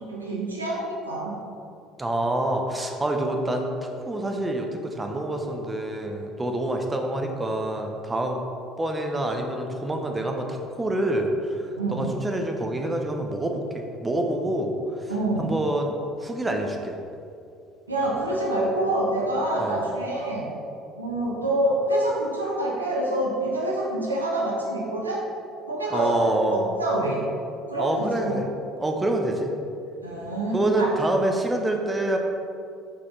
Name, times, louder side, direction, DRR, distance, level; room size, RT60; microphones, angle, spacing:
voice 1, 0.0-1.3 11.8-12.1 15.1-15.5 17.9-20.5 21.0-25.2 25.7-27.2 27.7-28.4 30.0-31.0, right 1 dB, 85° right, -4 dB, 1.1 m, -26 dB
voice 2, 2.0-3.7 4.1-8.4 8.8-15.1 15.4-15.9 16.2-17.0 19.6-19.8 25.9-26.6 27.8-28.4 28.8-29.5 30.5-32.2, right 1 dB, 15° right, 3 dB, 0.8 m, -26 dB
5.6 x 5.4 x 4.1 m, 2.5 s
figure-of-eight pair, 60°, 0 cm